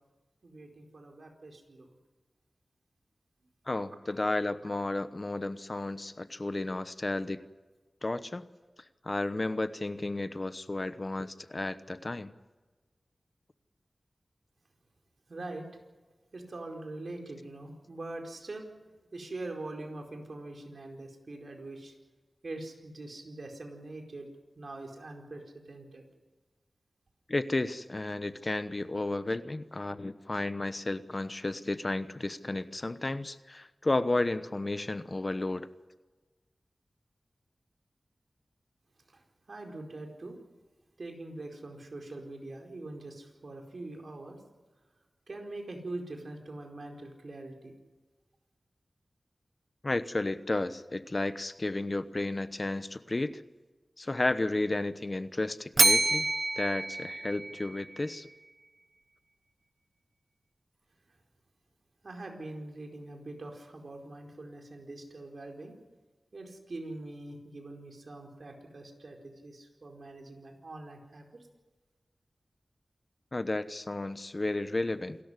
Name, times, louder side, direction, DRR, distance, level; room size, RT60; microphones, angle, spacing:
voice 1, 0.4-1.9 15.3-15.6 16.3-18.7 19.1-21.9 22.4-24.3 24.6-26.0 39.5-40.3 41.0-44.4 45.3-47.7 62.0-65.7 66.3-71.2, right 2 dB, 65° right, 3 dB, 4.6 m, -43 dB
voice 2, 3.7-7.4 8.0-8.5 9.0-12.3 27.3-35.7 49.8-53.4 54.0-56.3 56.6-58.3 73.3-75.2, left 2 dB, 35° left, 12 dB, 1.0 m, -32 dB
Bell, 55.8-58.0, right 2 dB, 40° right, 0.7 m, -27 dB
27.5 x 13.5 x 9.9 m, 1.3 s
wide cardioid pair, 70°, 0 cm